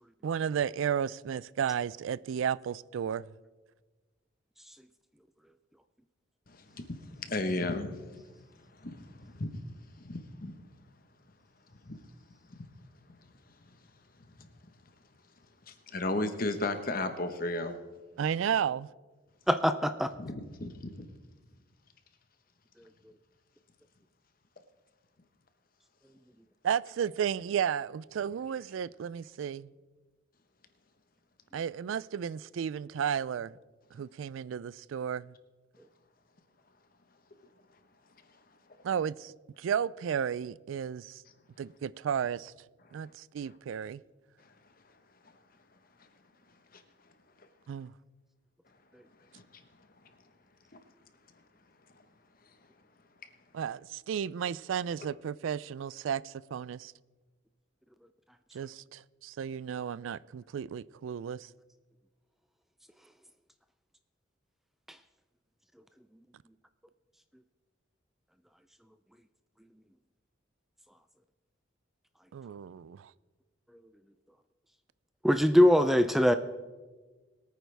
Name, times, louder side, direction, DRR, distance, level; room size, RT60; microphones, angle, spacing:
voice 1, 0.2-3.2 18.2-18.9 26.6-29.7 31.5-33.5 33.9-35.3 38.8-39.3 39.6-41.2 41.6-42.5 42.9-44.0 47.7-47.9 53.5-56.9 58.5-61.5 72.3-73.1, right 8 dB, 85° right, 0.3 m, -33 dB
voice 2, 6.5-8.0 8.7-9.6 10.0-10.5 11.8-12.0 12.5-12.7 14.4-14.5 15.7-17.8 20.2-21.1 46.7-46.8 49.3-49.6, left 2 dB, 45° left, 1.1 m, -35 dB
voice 3, 19.5-20.1 75.2-76.3, equal, ahead, 0.3 m, -22 dB
21.5 x 9.3 x 3.4 m
head